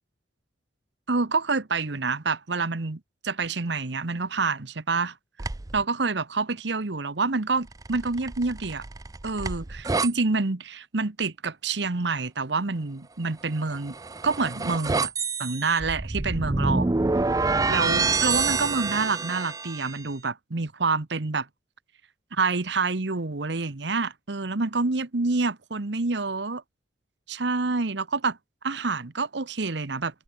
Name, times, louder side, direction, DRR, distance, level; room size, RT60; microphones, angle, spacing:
voice 1, 1.1-5.1 5.7-8.8 9.2-13.9 14.2-15.1 15.4-16.9 17.7-21.5 22.3-26.6 27.3-28.4 28.6-30.2, right 3 dB, 65° right, 1.1 m, -27 dB
sound 1, 5.4-5.8 7.7-10.1 13.6-20.0, right 3 dB, 20° right, 0.4 m, -27 dB
open air
head